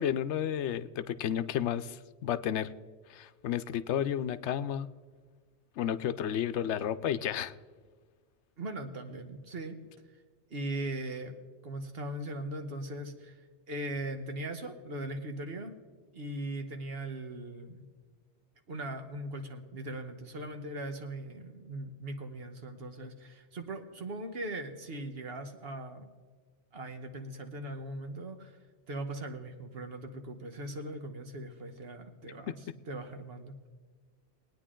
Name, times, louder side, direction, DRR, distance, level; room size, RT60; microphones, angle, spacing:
voice 1, 0.0-2.7 3.1-4.9 5.8-7.5, left 9 dB, 85° left, 12 dB, 0.9 m, -32 dB
voice 2, 8.6-9.8 10.1-10.2 10.5-11.4 11.6-15.7 16.1-17.8 18.7-26.1 26.7-28.6 28.9-33.5, right 1 dB, 60° right, 6 dB, 1.4 m, -39 dB
21.0 x 9.3 x 3.7 m, 1.5 s
omnidirectional pair, 1.1 m